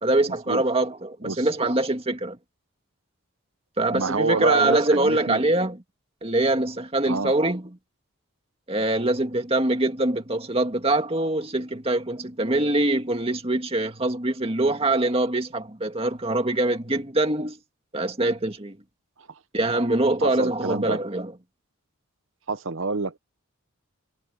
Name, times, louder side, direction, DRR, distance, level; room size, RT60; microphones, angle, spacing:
voice 1, 0.0-2.4 3.8-5.8 6.2-7.7 8.7-17.6 17.9-18.8 19.5-21.3, right 2 dB, 25° right, 2.1 m, -24 dB
voice 2, 3.9-5.4 7.1-7.3 19.2-19.3 20.2-21.0 22.5-23.2, right 4 dB, 65° right, 1.0 m, -27 dB
head